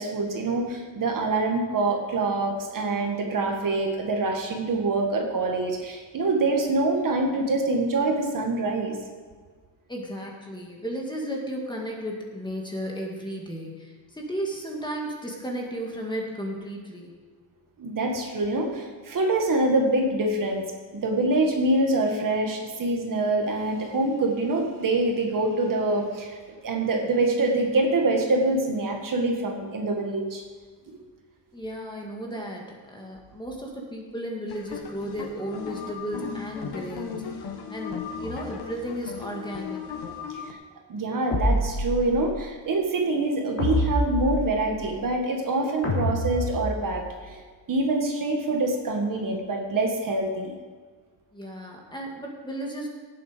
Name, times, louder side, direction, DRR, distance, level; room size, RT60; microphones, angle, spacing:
voice 1, 0.0-9.0 17.8-20.6 20.9-26.4 26.6-30.4 30.9-31.0 40.4-40.6 40.9-47.4 47.7-50.5, right 2 dB, 45° right, 2 dB, 1.8 m, -25 dB
voice 2, 9.9-17.2 31.5-40.0 51.3-52.9, equal, 10° left, -1 dB, 1.9 m, -34 dB
sound 1, 34.5-40.5, left 6 dB, 55° left, 1.4 m, -36 dB
sound 2, 41.3-42.4 43.6-44.8 45.8-47.1, equal, 35° left, 3.5 m, -27 dB
17.5 x 7.7 x 5.1 m, 1.5 s
cardioid pair, 160°, 46 cm